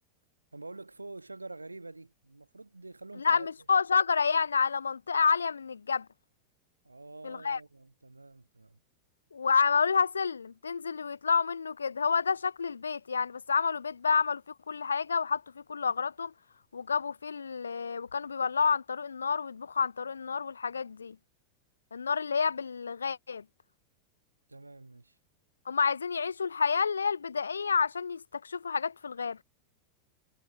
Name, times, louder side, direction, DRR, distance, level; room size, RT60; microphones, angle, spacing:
voice 1, 0.5-3.5 6.8-8.8 24.5-25.1, right 2 dB, 80° right, 1.3 m, -46 dB
voice 2, 3.2-6.1 7.2-7.6 9.3-14.4 14.7-16.3 16.7-21.2 21.9-23.4 25.7-29.4, left 5 dB, 75° left, 0.3 m, -29 dB
figure-of-eight pair, 90°, 0 cm